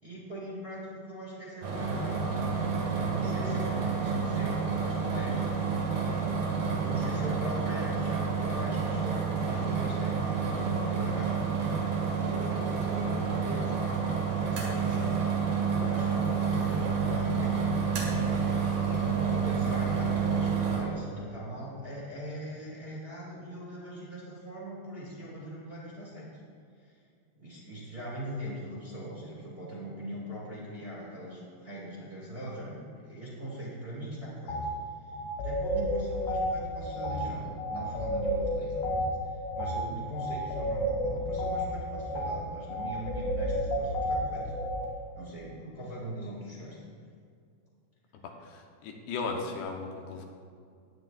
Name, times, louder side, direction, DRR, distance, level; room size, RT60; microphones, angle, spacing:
voice 1, 0.0-6.0 6.5-14.0 14.4-17.8 18.8-26.3 26.8-27.0 27.3-34.7 35.0-44.5 45.1-46.8, equal, 20° right, -6 dB, 1.6 m, -41 dB
sound 1, 1.6-20.8, right 5 dB, 60° right, 3.4 m, -29 dB
sound 2, 34.5-34.7 35.1-44.9, equal, 70° left, 3.3 m, -31 dB
voice 2, 48.5-50.3, left 4 dB, 90° left, 2 dB, 3.3 m, -36 dB
17.5 x 10.5 x 2.5 m, 2.3 s
omnidirectional pair, 4.7 m